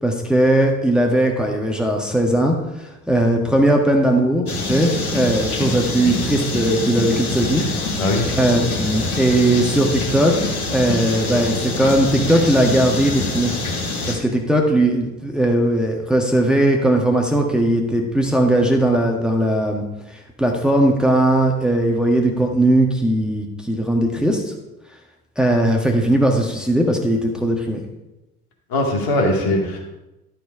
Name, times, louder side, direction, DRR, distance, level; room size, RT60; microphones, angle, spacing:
voice 1, 0.0-8.0 8.3-10.4 10.7-13.5 14.1-19.8 20.1-24.5 25.4-27.8, right 1 dB, ahead, 0 dB, 1.4 m, -18 dB
sound 1, 4.5-14.1, left 2 dB, 80° left, 1.6 m, -25 dB
voice 2, 28.7-30.0, left 1 dB, 50° left, 0 dB, 2.5 m, -20 dB
12.0 x 5.8 x 4.8 m, 0.99 s
figure-of-eight pair, 60°, 44 cm